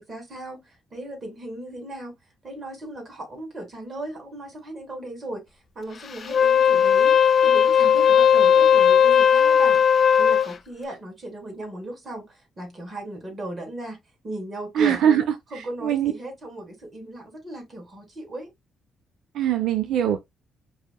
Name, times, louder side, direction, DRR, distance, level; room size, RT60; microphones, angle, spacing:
voice 1, 0.0-2.1 2.4-5.5 5.7-9.8 10.2-14.0 14.2-15.2 15.5-18.5, right 1 dB, 30° right, 2.4 m, -36 dB
Wind instrument woodwind instrument, 6.2-10.5, left 8 dB, 50° left, 0.5 m, -17 dB
voice 2, 14.7-15.2 15.5-16.1 19.3-20.2, right 9 dB, 80° right, 0.5 m, -22 dB
4.9 x 2.7 x 2.3 m
cardioid pair, 90°, 0 cm